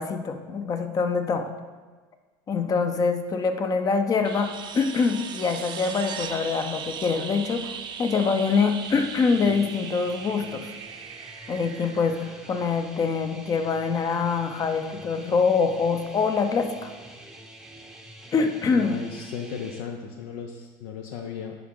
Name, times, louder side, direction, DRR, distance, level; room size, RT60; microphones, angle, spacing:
voice 1, 0.0-1.5 2.5-10.7 11.5-16.9 18.3-19.0, left 5 dB, 35° left, 7 dB, 0.7 m, -25 dB
sound 1, 4.2-12.9 15.3-15.4, right 7 dB, 45° right, 0.7 m, -38 dB
sound 2, 8.8-19.8, right 1 dB, 5° right, 0.7 m, -46 dB
voice 2, 18.7-21.6, left 7 dB, 75° left, 3 dB, 0.6 m, -36 dB
10.5 x 3.8 x 3.8 m, 1.4 s
supercardioid pair, 105°, 11 cm